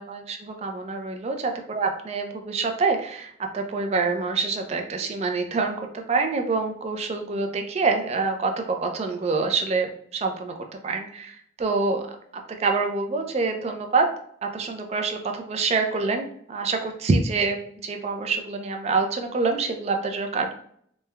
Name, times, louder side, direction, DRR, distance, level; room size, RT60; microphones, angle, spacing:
voice 1, 0.0-10.5 10.8-12.0 12.5-14.1 14.4-20.5, right 4 dB, 35° right, 5 dB, 0.3 m, -26 dB
3.1 x 2.1 x 2.2 m, 0.64 s
head